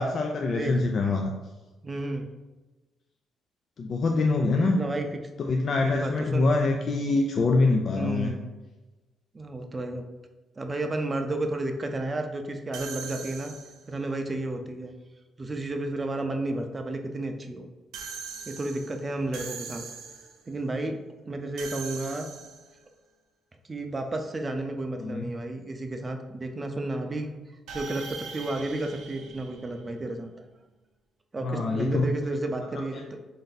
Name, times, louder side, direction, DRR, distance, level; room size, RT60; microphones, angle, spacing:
voice 1, 0.0-1.3 3.8-4.8 5.4-8.3 25.0-25.3 31.4-32.0 32.7-33.0, left 3 dB, 55° left, 2 dB, 0.3 m, -25 dB
voice 2, 1.8-2.3 4.5-5.1 5.8-6.5 7.9-8.4 9.3-10.0 10.6-13.5 13.9-14.9 15.4-17.7 18.5-19.8 20.5-21.0 21.3-22.3 23.7-27.4 27.7-30.3 31.3-33.0, right 2 dB, 25° right, 5 dB, 0.5 m, -32 dB
sound 1, 12.7-14.0 17.9-20.5 21.6-22.8 27.7-30.2, right 5 dB, 90° right, 0.5 m, -41 dB
3.3 x 2.7 x 3.9 m, 1.1 s
cardioid pair, 90°, 0 cm